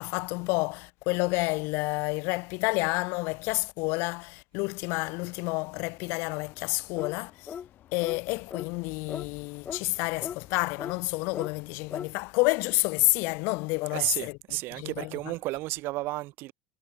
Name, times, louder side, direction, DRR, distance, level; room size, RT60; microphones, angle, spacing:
voice 1, 0.0-7.5 7.9-14.4 14.7-15.3, left 28 dB, 65° left, 0.4 m, -29 dB
sound 1, 4.7-12.3, left 12 dB, 45° left, 3.3 m, -57 dB
sound 2, 7.0-7.2 7.5-7.7 8.0-8.2 8.5-8.7 9.1-9.3 9.7-9.8 10.2-10.4 10.8-10.9 11.3-11.5 11.9-12.1, left 7 dB, 30° left, 0.8 m, -37 dB
voice 2, 13.9-16.5, right 19 dB, 60° right, 0.9 m, -32 dB
supercardioid pair, 125°, 4 cm